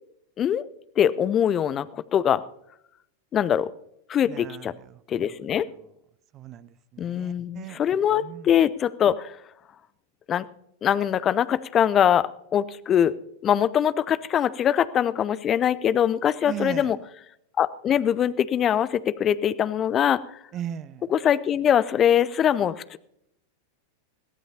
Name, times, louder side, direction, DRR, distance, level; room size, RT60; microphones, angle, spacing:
voice 1, 1.0-2.4 3.3-3.7 4.1-4.7 5.1-5.7 7.0-9.4 10.3-10.5 10.8-13.2 13.4-17.0 17.6-20.2 21.1-23.0, left 9 dB, 25° left, 16 dB, 0.5 m, -22 dB
voice 2, 4.3-4.7 6.3-7.8 8.2-8.5 16.5-16.9 20.5-21.0, right 10 dB, 30° right, 18 dB, 0.6 m, -37 dB
22.0 x 15.5 x 2.8 m, 0.76 s
figure-of-eight pair, 90°, 0 cm